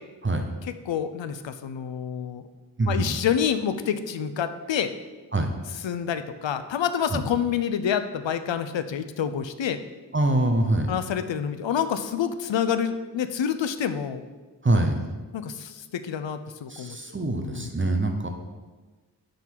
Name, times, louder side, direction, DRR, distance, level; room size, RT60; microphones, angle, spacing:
voice 1, 0.2-0.6 2.8-3.2 5.3-5.5 7.1-7.3 10.1-10.9 14.6-15.1 16.7-18.3, right 2 dB, 25° right, 4 dB, 0.7 m, -24 dB
voice 2, 0.9-2.5 2.9-4.9 5.8-9.8 10.9-14.2 15.3-17.0 17.4-17.7, left 8 dB, 80° left, 11 dB, 0.6 m, -28 dB
11.5 x 3.9 x 4.6 m, 1.3 s
wide cardioid pair, 70°, 44 cm